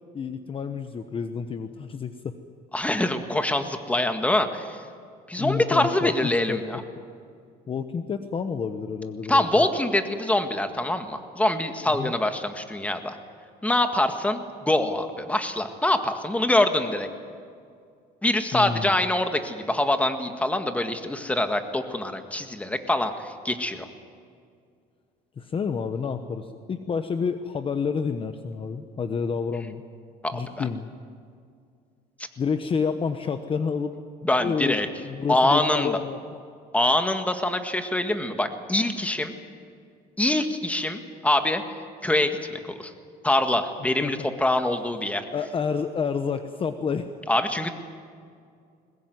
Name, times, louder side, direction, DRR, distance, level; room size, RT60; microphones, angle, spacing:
voice 1, 0.1-2.4 5.4-6.6 7.0-7.1 7.7-9.6 11.9-12.1 18.5-18.9 25.4-29.8 30.3-30.9 32.4-34.0 34.4-36.4 44.0-44.1 45.3-47.1, left 6 dB, 30° left, 8 dB, 1.1 m, -29 dB
voice 2, 2.7-4.8 5.3-6.8 9.3-13.2 13.6-17.1 18.2-23.9 30.2-30.7 34.2-34.9 35.3-36.0 36.7-39.3 40.2-41.6 42.0-42.4 42.8-42.9 43.2-45.2 47.3-47.7, left 1 dB, 10° left, 7 dB, 1.8 m, -24 dB
21.5 x 20.5 x 9.4 m, 2.2 s
cardioid pair, 125°, 17 cm